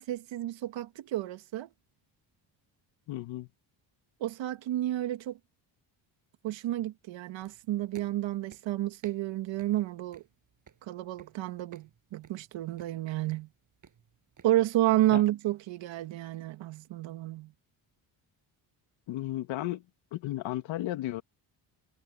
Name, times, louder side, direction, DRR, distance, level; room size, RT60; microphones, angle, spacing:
voice 1, 0.0-1.7 4.2-5.4 6.4-10.2 10.8-13.5 14.4-17.5, right 14 dB, 75° right, 2.0 m, -30 dB
voice 2, 3.1-3.5 15.1-15.2 19.1-19.8 20.1-21.2, left 15 dB, 85° left, 2.6 m, -34 dB
sound 1, 7.4-15.0, right 7 dB, 40° right, 7.9 m, -58 dB
cardioid pair, 105°, 45 cm